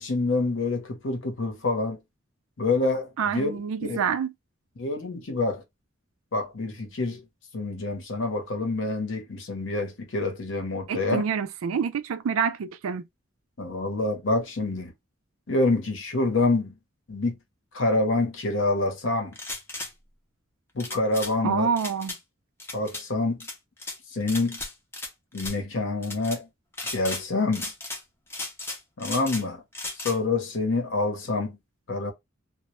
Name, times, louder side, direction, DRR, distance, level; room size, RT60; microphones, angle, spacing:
voice 1, 0.0-2.0 2.6-3.5 3.8-4.0 4.8-5.6 6.3-7.2 7.5-11.2 13.6-14.9 15.5-16.7 17.1-17.3 17.7-19.4 20.7-21.7 22.7-23.5 24.1-24.6 25.3-26.5 26.9-27.7 29.0-29.6 30.0-31.6 31.9-32.1, left 2 dB, 70° left, 0.8 m, -27 dB
voice 2, 3.2-4.3 10.9-13.0 21.4-22.1, right 6 dB, 85° right, 0.4 m, -27 dB
sound 1, 19.3-19.9 20.8-21.3 21.8-22.2 22.6-23.0 23.4-24.0 24.3-25.1 25.3-25.6 26.0-26.4 26.7-27.2 27.5-28.0 28.3-29.4 29.7-30.2, left 2 dB, 10° left, 0.4 m, -35 dB
2.1 x 2.0 x 2.9 m
head